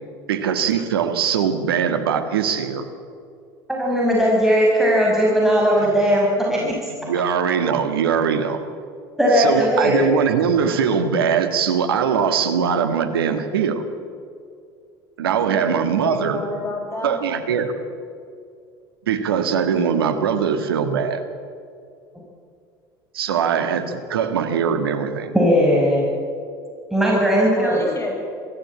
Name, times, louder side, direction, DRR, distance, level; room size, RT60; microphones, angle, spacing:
voice 1, 0.3-2.9 5.8-5.9 6.5-6.7 7.0-8.6 9.3-13.8 15.2-16.4 17.0-17.7 19.1-21.2 23.1-25.3, right 7 dB, 80° right, 7 dB, 1.8 m, -21 dB
voice 2, 3.7-6.7 9.2-10.1 25.3-26.1 26.9-27.8, equal, 5° right, -4 dB, 6.1 m, -18 dB
voice 3, 15.5-17.2 23.3-23.7 27.5-28.2, left 2 dB, 20° left, 2 dB, 7.3 m, -30 dB
23.5 x 15.0 x 8.7 m, 2.3 s
hypercardioid pair, 70°, 12 cm